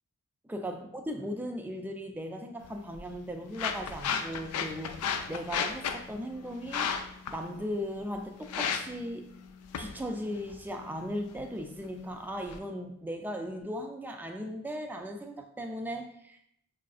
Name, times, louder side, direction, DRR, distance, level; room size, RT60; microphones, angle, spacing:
voice 1, 0.5-6.9 7.3-9.3 9.8-16.4, equal, 10° right, 4 dB, 0.3 m, -37 dB
sound 1, 2.6-12.6, left 7 dB, 85° left, 0.4 m, -36 dB
5.6 x 2.5 x 2.3 m, 0.74 s
head